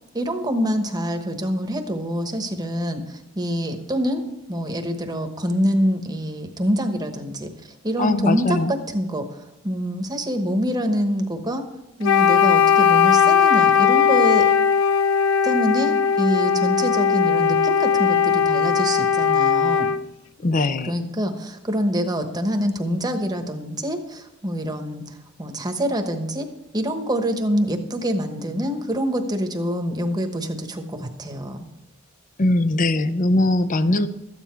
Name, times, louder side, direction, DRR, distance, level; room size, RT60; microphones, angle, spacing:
voice 1, 0.1-7.5 7.8-11.6 12.0-14.4 15.4-19.9 20.8-26.5 26.7-31.7, equal, 20° right, 5 dB, 1.1 m, -25 dB
voice 2, 8.0-8.7 20.4-20.9 32.4-34.1, left 2 dB, 40° left, 12 dB, 0.6 m, -20 dB
Wind instrument woodwind instrument, 12.0-20.1, left 7 dB, 80° left, 0.4 m, -18 dB
13.5 x 9.5 x 4.5 m, 0.93 s
head